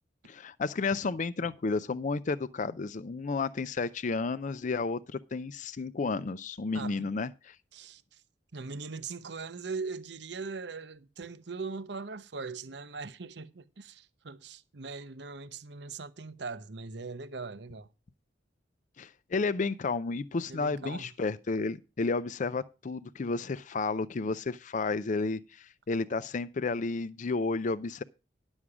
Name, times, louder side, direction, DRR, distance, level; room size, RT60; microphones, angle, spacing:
voice 1, 0.2-7.6 19.0-28.0, left 4 dB, 45° left, 0.5 m, -32 dB
voice 2, 6.7-7.1 7.7-8.2 8.5-17.9 20.5-21.1, right 4 dB, 70° right, 0.8 m, -40 dB
11.0 x 7.2 x 4.8 m
head